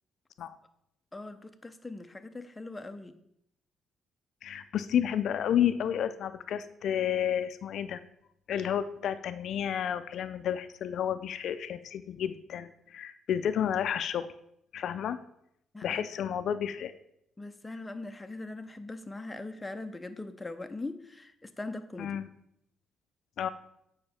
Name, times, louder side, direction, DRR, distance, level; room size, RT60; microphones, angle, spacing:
voice 1, 1.1-3.1 15.7-16.1 17.4-22.2, left 2 dB, 15° left, 8 dB, 0.7 m, -41 dB
voice 2, 4.4-8.0 8.5-14.3 14.7-15.2 15.8-16.9 22.0-22.3 23.4-23.5, left 9 dB, 70° left, 12 dB, 0.4 m, -31 dB
8.7 x 5.6 x 4.2 m, 0.76 s
cardioid pair, 90°, 0 cm